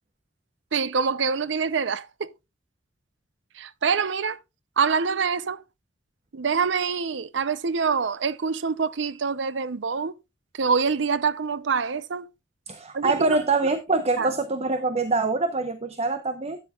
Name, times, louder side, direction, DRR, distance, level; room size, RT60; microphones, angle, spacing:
voice 1, 0.7-2.3 3.5-4.4 4.8-5.6 6.3-10.2 10.5-12.3 12.9-13.4 14.2-14.3, right 5 dB, 75° right, 0.6 m, -25 dB
voice 2, 12.7-16.6, right 3 dB, 35° right, 0.8 m, -24 dB
12.5 x 8.9 x 2.3 m
head